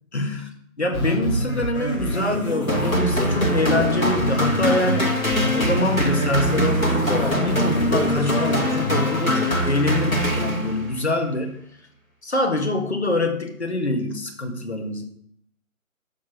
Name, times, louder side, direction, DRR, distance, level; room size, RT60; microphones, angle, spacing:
voice 1, 0.1-0.5 0.8-5.1 5.5-11.6 12.2-15.0, left 2 dB, 50° left, 3 dB, 1.7 m, -25 dB
sound 1, 0.9-9.4, right 1 dB, 20° left, 2.6 m, -27 dB
sound 2, 2.7-11.0, equal, 70° left, 2.2 m, -23 dB
7.3 x 7.0 x 6.0 m, 0.65 s
figure-of-eight pair, 160°, 42 cm